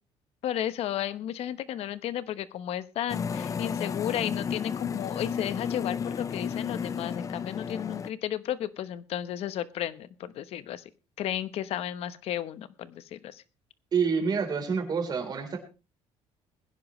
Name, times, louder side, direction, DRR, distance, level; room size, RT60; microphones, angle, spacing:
voice 1, 0.4-10.8 11.2-13.4, left 11 dB, 60° left, 14 dB, 1.0 m, -33 dB
sound 1, 3.1-8.1, left 6 dB, 30° left, 0.5 m, -33 dB
voice 2, 13.9-15.6, right 5 dB, 35° right, 4 dB, 3.8 m, -27 dB
21.5 x 10.5 x 3.2 m, 0.32 s
cardioid pair, 135°, 11 cm